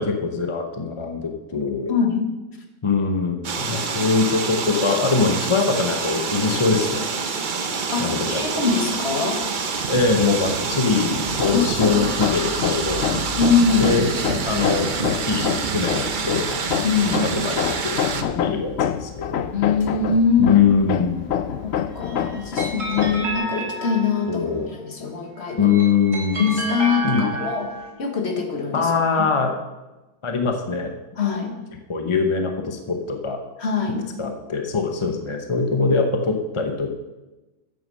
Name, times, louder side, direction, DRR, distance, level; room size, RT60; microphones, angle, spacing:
voice 1, 0.0-2.0 2.8-7.1 8.0-8.4 9.9-13.0 13.8-14.1 14.5-14.9 15.3-16.5 17.4-19.4 20.4-21.4 24.3-24.7 25.6-26.4 27.0-27.3 28.7-29.5 30.2-30.9 31.9-33.4 34.2-36.9, left 5 dB, 30° left, 4 dB, 0.6 m, -22 dB
voice 2, 1.9-2.2 7.9-9.4 11.5-12.0 13.4-13.9 16.8-17.2 19.5-20.6 21.6-25.7 26.3-27.7 28.0-29.3 31.2-31.5 33.6-34.0, left 5 dB, 45° left, 3 dB, 1.5 m, -23 dB
sound 1, 3.4-18.2, right 5 dB, 45° right, 0.6 m, -27 dB
Hammer, 11.3-23.4, left 9 dB, 75° left, 0.6 m, -27 dB
sound 2, 21.9-24.5 25.5-27.9, right 2 dB, 80° right, 3.8 m, -30 dB
8.8 x 7.7 x 6.3 m, 1.1 s
omnidirectional pair, 1.7 m